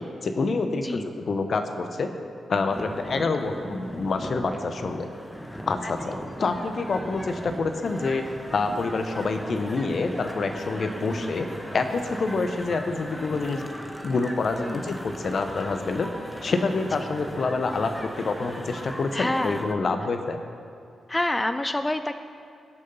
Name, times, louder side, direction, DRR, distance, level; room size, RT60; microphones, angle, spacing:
voice 1, 0.0-2.1 2.5-5.1 5.7-13.6 14.0-16.1 16.4-20.4, left 3 dB, 60° left, 7 dB, 0.9 m, -27 dB
sound 1, 2.7-19.7, equal, 5° left, 1.4 m, -38 dB
voice 2, 5.8-6.3 11.1-11.3 14.6-15.0 17.0-17.1 19.1-19.7 21.1-22.1, left 1 dB, 20° left, 9 dB, 0.5 m, -29 dB
15.5 x 6.6 x 5.5 m, 2.4 s
supercardioid pair, 45°, 0 cm